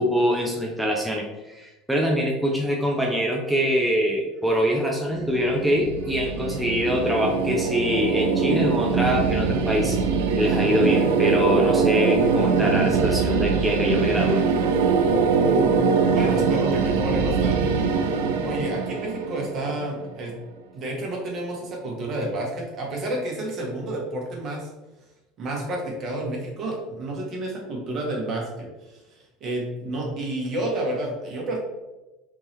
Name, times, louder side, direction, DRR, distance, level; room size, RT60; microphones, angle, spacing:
voice 1, 0.0-10.0 10.3-14.4, equal, 5° right, -1 dB, 0.6 m, -24 dB
sound 1, 5.1-20.2, right 5 dB, 80° right, 0.4 m, -22 dB
voice 2, 15.3-17.7 18.4-20.3 20.7-24.7 25.4-31.6, right 1 dB, 50° right, -1 dB, 1.3 m, -30 dB
3.6 x 2.7 x 3.1 m, 1.1 s
hypercardioid pair, 90°, 0 cm